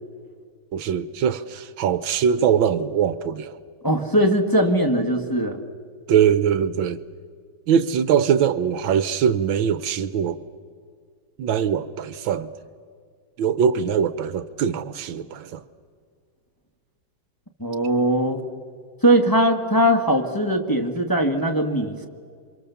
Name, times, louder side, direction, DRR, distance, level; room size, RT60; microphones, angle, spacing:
voice 1, 0.7-3.6 6.1-7.0 7.7-10.4 11.4-12.5 13.4-15.6, right 8 dB, 75° right, 15 dB, 1.6 m, -22 dB
voice 2, 3.8-5.6 17.6-18.4 19.0-22.1, right 1 dB, 10° left, 3 dB, 1.5 m, -20 dB
28.5 x 25.0 x 7.0 m, 2.1 s
omnidirectional pair, 2.2 m